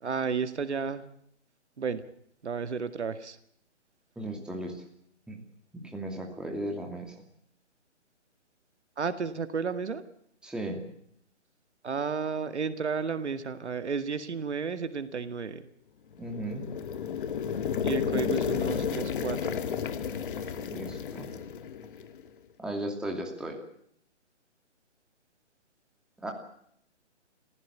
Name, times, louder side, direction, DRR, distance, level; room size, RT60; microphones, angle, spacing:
voice 1, 0.0-1.1 1.8-2.0 2.4-3.4 9.0-10.0 11.8-15.7 17.8-19.6, right 5 dB, 70° right, 11 dB, 2.0 m, -32 dB
voice 2, 4.2-4.8 5.3-5.4 5.7-7.1 10.4-10.8 16.2-16.7 20.6-21.4 22.6-23.6 26.2-26.3, right 1 dB, ahead, 1 dB, 2.6 m, -36 dB
sound 1, 16.2-22.2, left 7 dB, 45° left, 1.8 m, -32 dB
28.0 x 15.5 x 8.2 m, 0.68 s
figure-of-eight pair, 145°, 36 cm